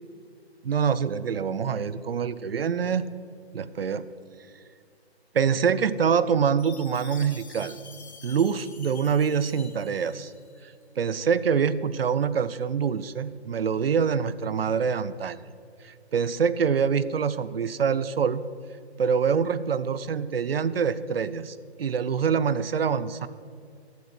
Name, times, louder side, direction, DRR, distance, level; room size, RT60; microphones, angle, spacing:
voice 1, 0.7-3.1 3.5-4.1 5.3-7.8 8.2-10.3 11.0-15.4 15.8-18.5 19.0-23.3, right 6 dB, 60° right, 15 dB, 0.6 m, -25 dB
Chime, 6.6-10.7, left 5 dB, 80° left, 1.7 m, -47 dB
12.5 x 8.5 x 6.2 m, 2.3 s
hypercardioid pair, 170°, 33 cm